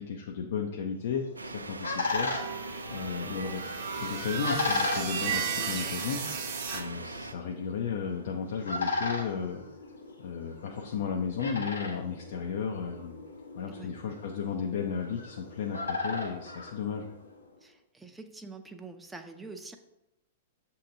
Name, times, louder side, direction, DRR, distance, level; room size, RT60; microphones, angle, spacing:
voice 1, 0.0-2.3 2.9-3.6 4.0-6.2 6.7-9.6 10.2-13.1 13.6-17.1, left 6 dB, 60° left, 1 dB, 0.5 m, -34 dB
sound 1, 1.2-17.4, left 3 dB, 85° left, 1.0 m, -37 dB
sound 2, 1.4-7.3, right 3 dB, 85° right, 0.3 m, -41 dB
sound 3, 2.1-6.8, right 6 dB, 45° right, 0.8 m, -34 dB
voice 2, 5.6-5.9 13.7-13.9 17.6-19.8, right 3 dB, 5° right, 4 dB, 0.5 m, -45 dB
7.2 x 2.8 x 2.7 m, 0.89 s
figure-of-eight pair, 105°, 0 cm